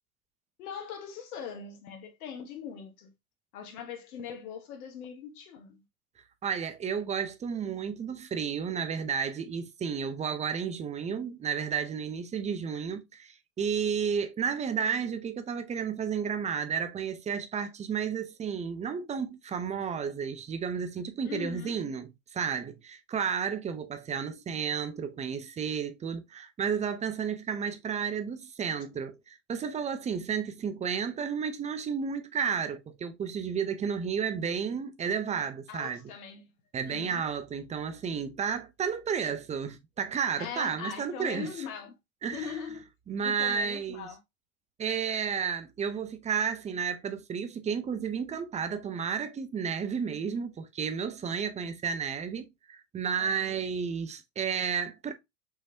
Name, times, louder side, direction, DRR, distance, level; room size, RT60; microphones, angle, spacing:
voice 1, 0.6-3.1 3.5-5.8 21.2-21.7 35.7-36.5 36.8-37.2 40.4-41.9 42.3-42.8 43.2-44.2 53.2-53.6, left 7 dB, 75° left, 1.7 m, -41 dB
voice 2, 6.4-36.1 36.7-41.5 42.2-42.6 43.1-44.1 44.8-55.1, right 7 dB, 15° right, 0.6 m, -32 dB
5.4 x 3.1 x 2.7 m
supercardioid pair, 120°, 44 cm